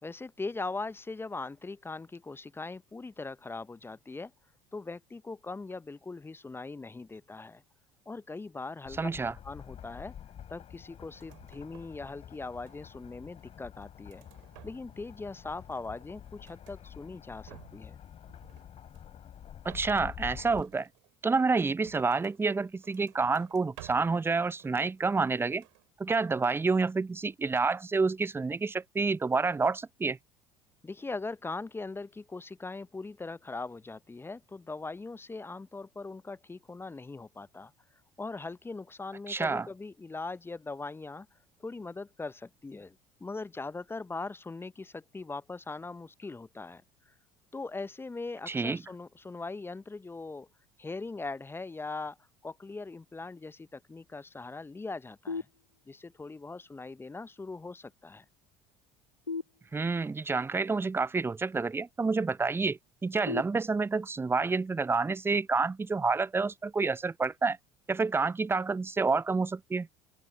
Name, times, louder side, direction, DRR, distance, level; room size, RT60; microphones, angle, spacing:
voice 1, 0.0-4.3 4.7-7.6 8.1-9.1 9.4-10.1 10.5-14.2 14.6-18.0 30.8-37.7 38.2-41.3 41.6-47.1 47.5-50.5 50.8-52.2 52.4-55.5 55.9-58.2, left 3 dB, 15° left, 0.9 m, -40 dB
sound 1, 8.8-20.6, left 9 dB, 40° left, 5.2 m, -48 dB
voice 2, 9.0-9.3 19.6-20.9 21.2-25.6 26.0-30.2 39.3-39.7 48.5-48.8 59.7-67.6 67.9-69.9, right 4 dB, 15° right, 0.8 m, -28 dB
sound 2, 11.1-12.1 12.3-13.1 13.6-15.1 15.4-16.8 17.2-17.9 18.2-19.2 19.6-22.4 22.8-24.2 24.5-25.3 25.5-25.9, right 24 dB, 65° right, 3.7 m, -56 dB
sound 3, 55.3-56.2 59.2-60.3 63.3-64.3, left 4 dB, 90° left, 0.6 m, -40 dB
open air
figure-of-eight pair, 65°, 16 cm